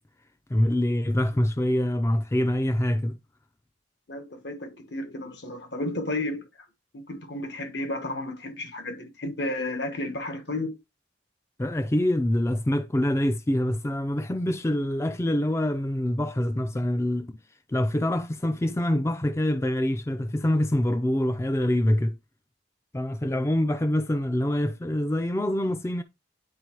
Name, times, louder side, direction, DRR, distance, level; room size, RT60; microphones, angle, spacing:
voice 1, 0.5-3.2 11.6-17.4 17.7-22.2 22.9-26.0, left 1 dB, 15° left, 0.3 m, -25 dB
voice 2, 4.1-6.4 6.9-10.8, left 2 dB, 70° left, 1.4 m, -32 dB
9.4 x 4.3 x 3.0 m
head